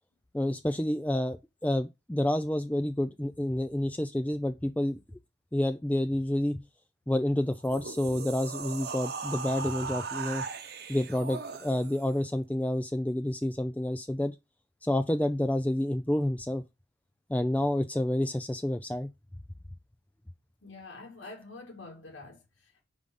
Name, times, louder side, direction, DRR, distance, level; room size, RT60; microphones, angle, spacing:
voice 1, 0.3-5.0 5.5-6.6 7.1-10.4 10.9-14.3 14.8-16.6 17.3-19.1, left 1 dB, 10° left, 0.4 m, -29 dB
sound 1, 7.5-12.1, right 5 dB, 55° right, 0.9 m, -38 dB
voice 2, 20.6-22.9, left 3 dB, 85° left, 2.1 m, -47 dB
5.2 x 4.9 x 5.3 m
head